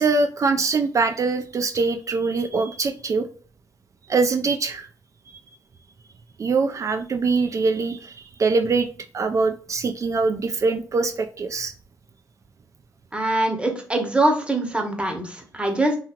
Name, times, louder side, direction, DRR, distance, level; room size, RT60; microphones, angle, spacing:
voice 1, 0.0-3.3 4.1-4.9 6.4-11.7, right 4 dB, 40° right, 6 dB, 0.4 m, -23 dB
voice 2, 13.1-16.0, right 2 dB, 15° right, 3 dB, 0.9 m, -23 dB
2.9 x 2.7 x 2.4 m, 0.40 s
supercardioid pair, 60°, 8 cm